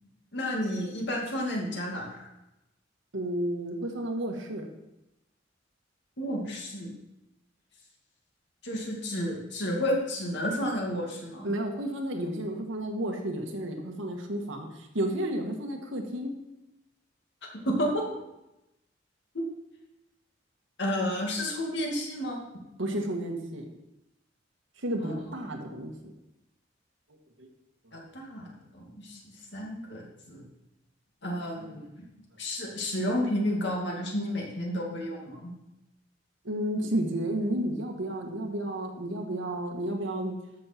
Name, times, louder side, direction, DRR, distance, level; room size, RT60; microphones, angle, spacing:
voice 1, 0.3-2.3 6.2-6.9 8.6-11.5 17.6-18.0 19.3-19.4 20.8-22.4 25.0-25.1 27.9-28.5 28.7-30.4 31.2-31.9 32.4-35.5, equal, 65° left, -1 dB, 2.4 m, -31 dB
voice 2, 3.1-4.7 11.4-16.3 22.8-23.6 24.8-26.1 27.4-27.5 36.4-40.3, right 1 dB, 85° right, 2 dB, 1.7 m, -32 dB
13.0 x 6.6 x 4.5 m, 0.93 s
head